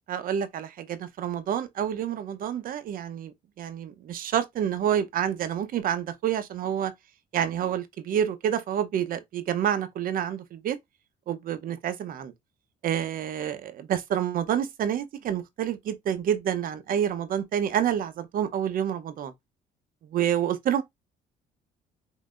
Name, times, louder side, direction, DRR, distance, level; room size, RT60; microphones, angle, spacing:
voice 1, 0.1-6.9 7.3-10.8 11.3-12.3 12.8-19.3 20.1-20.8, right 9 dB, 55° right, 0.7 m, -28 dB
5.6 x 2.7 x 2.5 m
cardioid pair, 110°, 17 cm